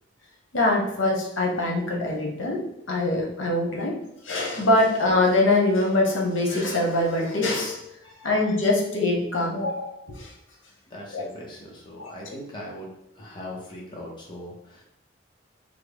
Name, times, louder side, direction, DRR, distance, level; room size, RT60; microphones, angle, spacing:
voice 1, 0.5-4.0 4.2-7.8 8.2-10.3 11.1-11.3 12.0-12.1, left 2 dB, 85° left, -1 dB, 0.8 m, -23 dB
voice 2, 8.0-8.4 10.9-14.8, left 1 dB, 25° left, -3 dB, 0.6 m, -40 dB
3.5 x 2.1 x 3.3 m, 0.83 s
head